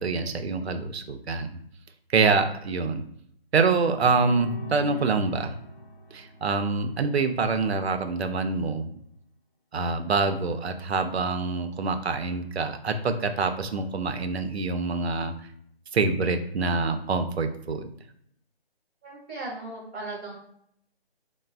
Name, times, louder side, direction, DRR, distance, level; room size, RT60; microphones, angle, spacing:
voice 1, 0.0-1.6 2.1-3.0 3.5-5.5 6.1-8.9 9.7-15.3 15.9-17.9, right 4 dB, 85° right, 7 dB, 0.5 m, -26 dB
sound 1, 3.8-7.5, left 2 dB, 55° left, 0.6 m, -41 dB
voice 2, 19.0-20.3, right 2 dB, 10° right, -12 dB, 0.5 m, -37 dB
3.1 x 2.1 x 2.4 m, 0.68 s
figure-of-eight pair, 160°, 31 cm